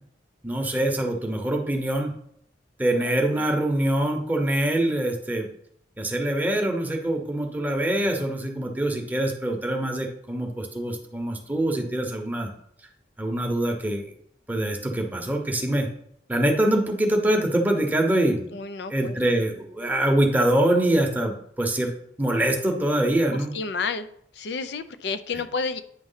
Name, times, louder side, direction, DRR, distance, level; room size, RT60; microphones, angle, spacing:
voice 1, 0.4-2.1 2.8-5.5 6.0-12.5 13.2-14.0 14.5-15.9 16.3-18.5 18.9-21.9 22.2-23.5, right 1 dB, 10° right, 1 dB, 0.9 m, -24 dB
voice 2, 2.9-3.4 18.5-19.2 23.3-24.1 24.4-25.8, left 4 dB, 70° left, 12 dB, 0.5 m, -31 dB
9.0 x 3.1 x 5.6 m, 0.68 s
head